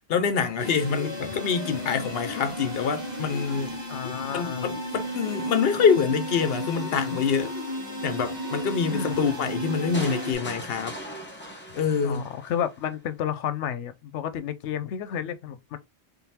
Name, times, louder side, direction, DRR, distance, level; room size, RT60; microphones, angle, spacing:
voice 1, 0.0-3.7 4.3-7.5 8.0-11.0 11.7-12.3, left 6 dB, 60° left, 0.9 m, -25 dB
sound 1, 0.6-10.3, equal, 40° right, 2.2 m, -34 dB
voice 2, 3.9-4.7 8.9-9.7 12.0-15.8, left 9 dB, 85° left, 0.9 m, -32 dB
sound 2, 9.9-12.9, equal, 10° left, 1.0 m, -39 dB
3.8 x 3.8 x 2.8 m
omnidirectional pair, 1.2 m